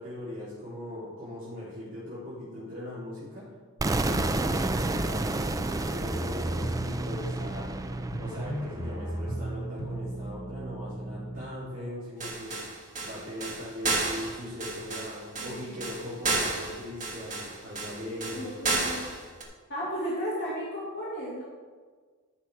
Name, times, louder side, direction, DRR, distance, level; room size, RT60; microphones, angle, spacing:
voice 1, 0.0-3.5 4.0-7.7 8.2-12.6 13.0-18.5, left 1 dB, 65° right, -11 dB, 3.5 m, -40 dB
sound 1, 3.8-9.7, right 2 dB, 15° right, 0.4 m, -31 dB
sound 2, 6.1-11.4, right 1 dB, 85° left, 3.3 m, -35 dB
voice 2, 8.7-9.3 15.4-15.9 18.3-19.0 19.7-21.4, equal, 55° left, -7 dB, 2.2 m, -35 dB
sound 3, 12.2-19.4, right 3 dB, 35° right, 1.6 m, -32 dB
13.5 x 5.8 x 4.8 m, 1.5 s
head